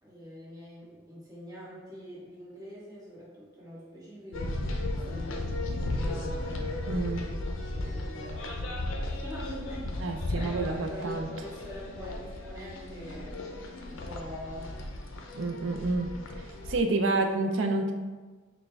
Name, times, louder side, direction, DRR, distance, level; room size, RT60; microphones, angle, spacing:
voice 1, 0.0-7.4 7.6-13.4 13.9-14.7, equal, 20° right, -8 dB, 1.4 m, -44 dB
sound 1, 4.3-16.8, left 2 dB, 65° left, 0.5 m, -35 dB
voice 2, 6.9-7.2 10.0-11.3 15.3-16.1 16.7-17.9, right 2 dB, 60° right, 4 dB, 0.5 m, -28 dB
6.3 x 2.2 x 3.3 m, 1.3 s
head